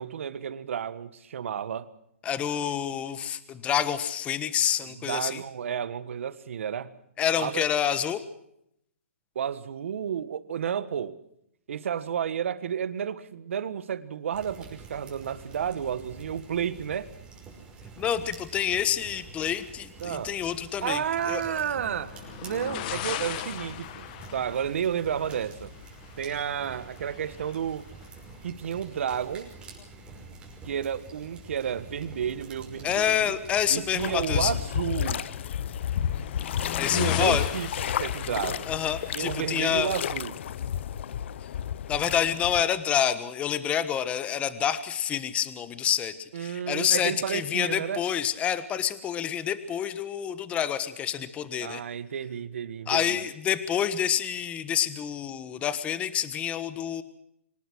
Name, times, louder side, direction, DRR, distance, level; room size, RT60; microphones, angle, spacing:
voice 1, 0.0-1.9 4.8-7.0 7.4-7.7 9.3-11.2 11.7-17.1 20.0-20.3 20.8-25.7 26.2-27.9 28.4-29.5 30.6-33.3 33.7-35.2 36.9-38.7 39.1-40.4 46.3-48.0 51.6-53.2, right 8 dB, 65° right, 14 dB, 1.6 m, -31 dB
voice 2, 2.2-5.4 7.2-8.2 18.0-21.4 32.8-34.5 36.7-37.5 38.7-39.9 41.9-51.8 52.9-57.0, left 9 dB, 15° left, 13 dB, 1.3 m, -28 dB
sound 1, 14.3-34.1, right 4 dB, 15° right, 5.8 m, -47 dB
sound 2, 21.1-40.8, left 11 dB, 40° left, 1.4 m, -39 dB
sound 3, 34.0-42.6, left 9 dB, 55° left, 1.0 m, -32 dB
24.5 x 19.5 x 6.4 m, 0.77 s
hypercardioid pair, 145°, 7 cm